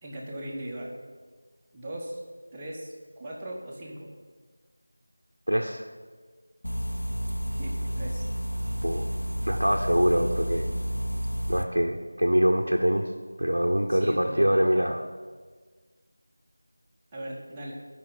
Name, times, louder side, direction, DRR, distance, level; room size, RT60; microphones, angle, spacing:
voice 1, 0.0-0.9 1.7-2.2 2.5-4.1 7.6-8.3 13.9-14.9 17.1-17.7, right 1 dB, 10° right, -6 dB, 0.9 m, -38 dB
voice 2, 5.5-5.8 8.8-9.1 9.4-10.7 11.5-13.1 13.4-15.0, equal, 80° right, 0 dB, 0.6 m, -24 dB
sound 1, 6.6-11.6, equal, 80° left, 0.7 m, -30 dB
12.0 x 5.1 x 3.9 m, 1.5 s
figure-of-eight pair, 170°, 0 cm